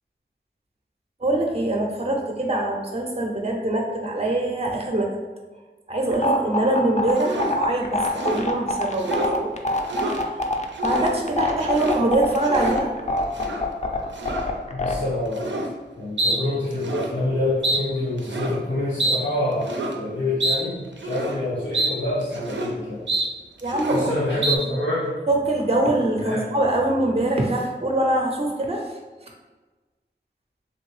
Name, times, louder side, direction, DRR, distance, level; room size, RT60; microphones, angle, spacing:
voice 1, 1.2-5.1 5.9-9.5 10.8-12.9 23.6-24.1 24.5-24.6 25.3-28.9, right 1 dB, 35° right, 1 dB, 0.5 m, -23 dB
sound 1, 6.1-14.9, left 2 dB, 40° left, 0.4 m, -24 dB
sound 2, 7.2-7.6 8.0-8.5 8.9-9.4 9.7-10.2 10.7-11.2 11.5-12.0 12.4-12.8 13.3-13.6 14.2-14.5 15.3-15.7 16.2-16.4 16.7-17.1 17.6-17.8 18.2-18.6 19.0-19.2 19.6-20.0 20.4-20.6 21.0-21.4 21.7-21.9 22.2-22.7 23.1-23.3 23.6-24.1 24.4-24.6, right 2 dB, 85° right, 0.4 m, -26 dB
voice 2, 14.7-15.7 16.0-23.0 23.9-25.2 26.2-26.5, left 1 dB, 90° left, -9 dB, 1.4 m, -27 dB
3.1 x 2.5 x 3.2 m, 1.3 s
wide cardioid pair, 40°, 19 cm